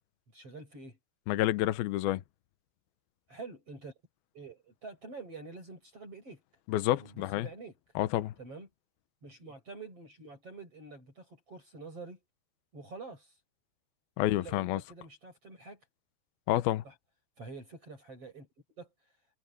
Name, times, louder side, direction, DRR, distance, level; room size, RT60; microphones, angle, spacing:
voice 1, 0.3-1.0 3.3-4.0 4.3-6.4 7.0-7.8 8.4-8.7 9.2-12.2 12.7-13.3 14.2-15.8 16.8-16.9 17.4-18.9, right 3 dB, 30° right, 8.6 m, -47 dB
voice 2, 1.3-2.2 6.7-7.5 8.0-8.3 14.2-14.8 16.5-16.8, left 15 dB, 75° left, 2.3 m, -29 dB
omnidirectional pair, 5.3 m